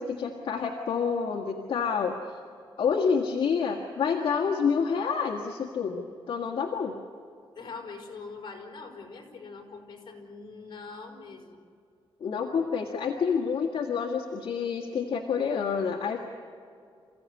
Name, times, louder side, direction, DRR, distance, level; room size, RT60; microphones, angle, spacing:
voice 1, 0.0-2.1 2.8-7.0 12.2-16.2, left 6 dB, 65° left, 0 dB, 1.8 m, -28 dB
voice 2, 7.5-11.6, left 4 dB, 50° left, 2 dB, 4.8 m, -43 dB
28.0 x 16.0 x 9.8 m, 2.3 s
wide cardioid pair, 160°, 10 cm